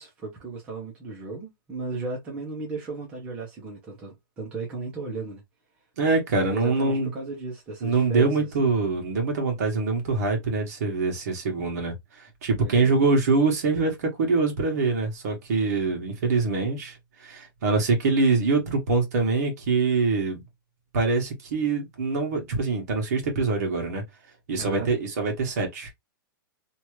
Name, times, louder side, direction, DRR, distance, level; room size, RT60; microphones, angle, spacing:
voice 1, 0.0-5.4 6.5-8.7 12.6-13.0 24.6-24.9, right 3 dB, 10° right, 0.6 m, -35 dB
voice 2, 6.0-7.1 7.8-17.0 17.2-20.4 20.9-24.0 24.5-25.9, right 4 dB, 45° right, 1.2 m, -24 dB
2.9 x 2.4 x 3.0 m
hypercardioid pair, 180°, 12 cm